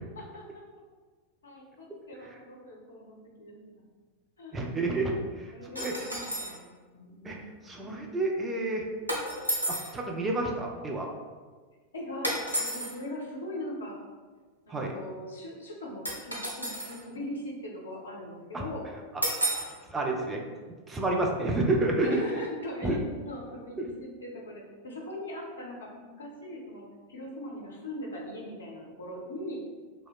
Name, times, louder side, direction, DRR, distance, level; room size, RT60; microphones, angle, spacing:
voice 1, 1.4-3.6 4.4-4.7 5.5-7.5 11.9-13.9 14.7-18.8 22.0-23.0 23.3-29.6, left 1 dB, 70° left, -2 dB, 0.6 m, -40 dB
voice 2, 4.5-5.9 7.2-7.4 7.6-8.8 9.7-11.1 14.7-14.9 18.5-18.6 19.9-20.4 20.9-22.2 22.8-23.0, right 2 dB, 15° right, 0 dB, 0.3 m, -29 dB
sound 1, 5.7-6.6 9.1-9.9 12.2-12.9 16.0-17.0 19.2-19.7, right 1 dB, 90° right, 0.5 m, -31 dB
2.7 x 2.0 x 2.3 m, 1.4 s
figure-of-eight pair, 90°, 0 cm